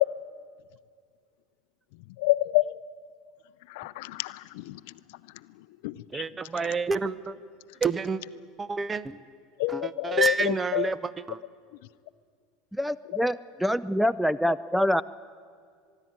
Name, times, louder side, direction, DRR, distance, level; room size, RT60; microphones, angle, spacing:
voice 1, 2.2-2.8 3.8-4.7 5.8-6.2 9.6-10.9, left 18 dB, 75° left, 17 dB, 0.5 m, -27 dB
voice 2, 6.1-7.4 7.8-8.2 8.6-9.2 9.7-11.4, right 4 dB, 25° right, 17 dB, 0.7 m, -29 dB
voice 3, 12.7-15.0, equal, ahead, 17 dB, 0.4 m, -25 dB
24.0 x 11.5 x 9.4 m, 2.1 s
hypercardioid pair, 95°, 0 cm